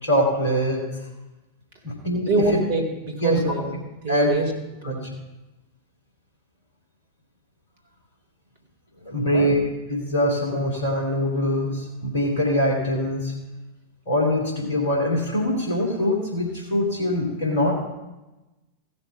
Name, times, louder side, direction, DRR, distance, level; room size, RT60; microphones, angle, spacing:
voice 1, 0.0-0.8 1.8-2.6 3.2-3.4 4.1-4.3 4.8-5.1 9.0-9.6 9.9-13.3 14.1-17.8, left 1 dB, 60° left, -2 dB, 2.8 m, -23 dB
voice 2, 2.3-4.5 4.8-5.0 9.2-9.5, right 3 dB, 55° right, 1 dB, 2.2 m, -25 dB
15.5 x 6.5 x 5.4 m, 1.1 s
figure-of-eight pair, 90°, 0 cm